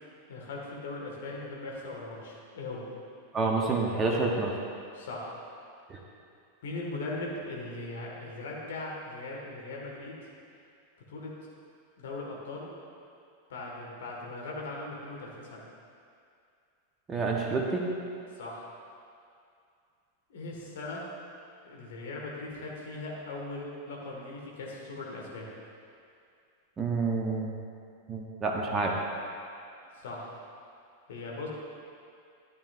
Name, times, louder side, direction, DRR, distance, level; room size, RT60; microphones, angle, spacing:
voice 1, 0.3-2.8 4.9-5.3 6.6-10.2 11.1-11.3 12.0-12.7 13.5-15.6 18.4-18.7 20.3-21.1 21.6-25.5 29.9-30.4 31.1-31.5, left 2 dB, 60° left, -3 dB, 1.9 m, -39 dB
voice 2, 3.3-4.5 5.9-6.0 17.1-17.8 26.8-27.5 28.1-28.9, right 3 dB, 20° right, -1 dB, 1.0 m, -28 dB
12.5 x 9.4 x 2.6 m, 2.4 s
figure-of-eight pair, 90°, 0 cm